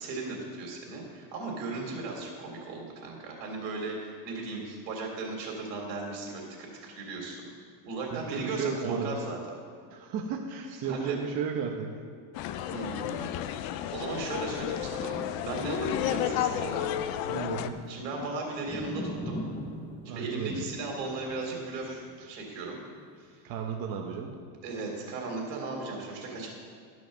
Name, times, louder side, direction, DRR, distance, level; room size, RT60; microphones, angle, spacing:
voice 1, 0.0-7.5 7.8-9.4 10.8-11.2 12.7-13.4 13.9-16.9 17.9-19.4 20.0-22.8 23.2-23.4 24.6-26.5, right 3 dB, 85° right, 0 dB, 3.3 m, -36 dB
voice 2, 8.1-9.1 9.9-11.9 17.2-17.8 20.0-20.6 22.2-22.3 23.4-24.3, right 6 dB, 45° right, 1 dB, 1.0 m, -34 dB
sound 1, 12.3-17.7, left 11 dB, 45° left, 0.6 m, -32 dB
sound 2, 14.6-22.8 23.3-23.4, left 1 dB, 10° left, 0.8 m, -42 dB
12.5 x 6.3 x 6.4 m, 2.1 s
supercardioid pair, 140°, 49 cm